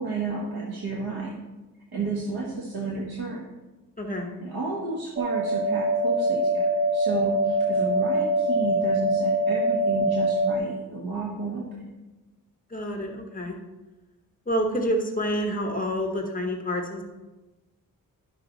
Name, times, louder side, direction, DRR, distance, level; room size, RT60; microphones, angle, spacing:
voice 1, 0.0-1.4 1.9-3.5 4.4-6.6 6.9-11.9, right 3 dB, 85° right, -4 dB, 1.5 m, -32 dB
voice 2, 4.0-4.3 12.7-13.6 14.5-17.0, equal, 25° left, 2 dB, 1.1 m, -28 dB
sound 1, 5.2-10.5, right 1 dB, 35° right, 0.5 m, -24 dB
10.5 x 6.6 x 4.0 m, 1.1 s
wide cardioid pair, 170°, 36 cm